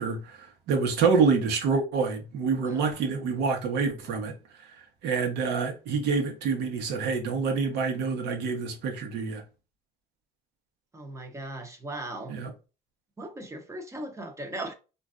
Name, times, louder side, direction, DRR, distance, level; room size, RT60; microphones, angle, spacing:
voice 1, 0.0-4.3 4.6-4.8 5.0-9.4 12.3-12.5, right 5 dB, 80° right, 1.0 m, -27 dB
voice 2, 10.9-12.4 13.2-14.7, right 1 dB, 15° right, 0.7 m, -38 dB
3.1 x 2.5 x 2.4 m
cardioid pair, 110°, 17 cm